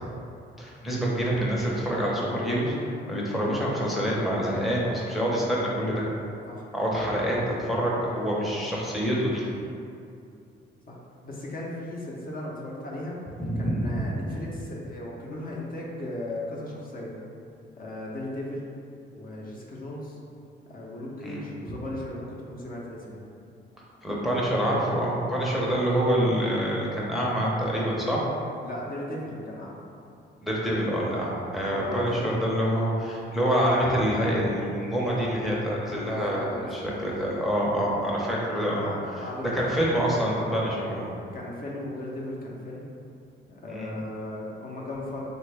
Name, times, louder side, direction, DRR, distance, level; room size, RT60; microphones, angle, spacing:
voice 1, 0.6-2.8 3.1-6.1 6.7-9.5 13.5-14.0 21.2-21.8 24.0-28.2 30.4-38.9 39.5-41.1 43.7-43.9, equal, ahead, -5 dB, 0.6 m, -26 dB
voice 2, 11.2-13.2 13.6-17.1 17.8-18.7 19.1-20.2 20.7-23.2 28.6-29.8 31.7-32.3 35.9-36.8 37.5-37.9 38.8-39.6 41.3-42.8 43.5-45.2, left 1 dB, 45° left, -3 dB, 0.6 m, -37 dB
3.5 x 2.2 x 3.2 m, 2.5 s
cardioid pair, 90°, 20 cm